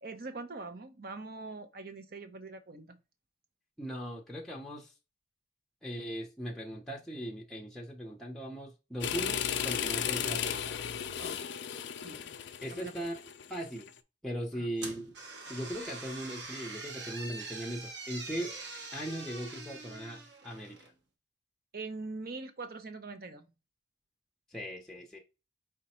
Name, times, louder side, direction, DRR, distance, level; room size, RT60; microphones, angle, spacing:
voice 1, 0.0-3.0 11.2-11.5 12.0-12.3 12.7-13.1 14.5-14.7 21.7-23.5, right 3 dB, 50° right, 0.7 m, -43 dB
voice 2, 3.8-4.9 5.8-10.8 12.6-13.2 13.5-13.9 14.2-15.1 15.5-18.5 18.9-20.9 24.5-25.2, equal, ahead, 0.8 m, -39 dB
sound 1, 9.0-13.9, left 9 dB, 65° left, 0.4 m, -35 dB
sound 2, 14.8-20.9, right 3 dB, 65° right, 1.0 m, -44 dB
5.0 x 2.2 x 4.2 m
head